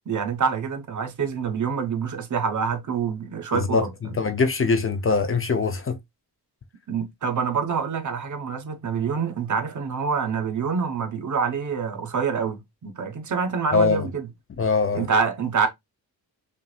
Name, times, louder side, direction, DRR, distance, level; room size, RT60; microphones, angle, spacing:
voice 1, 0.1-3.9 6.9-14.3 14.9-15.7, right 6 dB, 50° right, 1.0 m, -26 dB
voice 2, 3.5-6.0 13.7-14.1 14.6-15.1, left 4 dB, 35° left, 0.6 m, -22 dB
5.6 x 2.7 x 2.4 m
wide cardioid pair, 125°, 39 cm